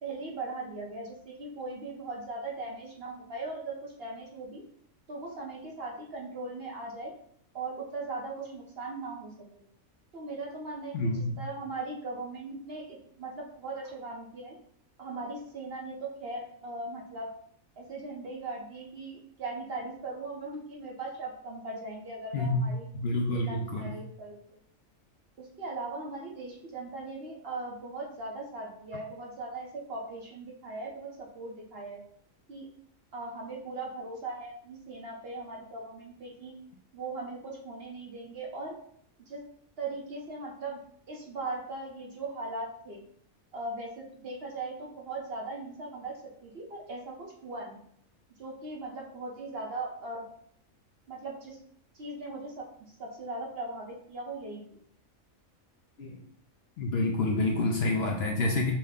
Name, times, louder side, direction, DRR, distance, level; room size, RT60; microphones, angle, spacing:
voice 1, 0.0-4.6 5.1-7.1 7.5-9.6 10.1-14.6 15.0-17.3 17.8-22.9 23.3-24.6 25.4-32.0 32.5-32.7 33.1-36.6 36.9-38.8 39.2-39.4 39.8-40.8 41.1-43.0 43.5-47.8 48.4-50.2 51.1-51.6 51.9-52.7 53.0-54.8, right 2 dB, 55° right, -1 dB, 0.9 m, -39 dB
voice 2, 10.9-11.3 22.3-23.9 56.0-56.2 56.8-58.7, left 2 dB, 60° left, 0 dB, 0.7 m, -28 dB
5.6 x 2.1 x 3.5 m, 0.65 s
omnidirectional pair, 1.4 m